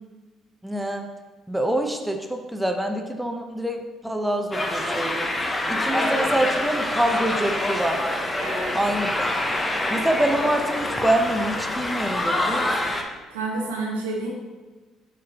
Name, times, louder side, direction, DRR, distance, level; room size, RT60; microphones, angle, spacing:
voice 1, 0.6-1.1 1.5-3.8 4.0-5.4 5.7-8.0 8.7-9.1 9.9-12.9, right 1 dB, 5° right, 4 dB, 0.7 m, -25 dB
sound 1, 4.5-13.0, left 1 dB, 20° left, 0.9 m, -26 dB
voice 2, 8.4-8.7 13.3-14.3, right 2 dB, 85° right, -2 dB, 1.1 m, -29 dB
7.2 x 5.2 x 2.9 m, 1.3 s
hypercardioid pair, 50°, 0 cm